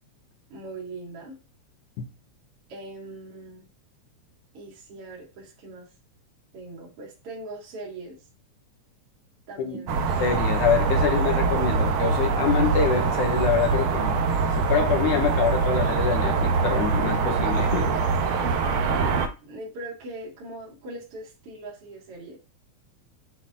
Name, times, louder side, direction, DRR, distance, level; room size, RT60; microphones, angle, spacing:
voice 1, 0.5-1.4 2.7-3.7 4.5-5.9 6.5-8.2 9.5-10.0 18.4-22.4, right 2 dB, 50° right, 2.9 m, -41 dB
sound 1, 9.9-19.3, right 4 dB, 70° right, 1.3 m, -23 dB
voice 2, 10.2-14.2 14.5-18.0, left 7 dB, 90° left, 2.7 m, -25 dB
8.3 x 3.9 x 3.6 m
omnidirectional pair, 3.4 m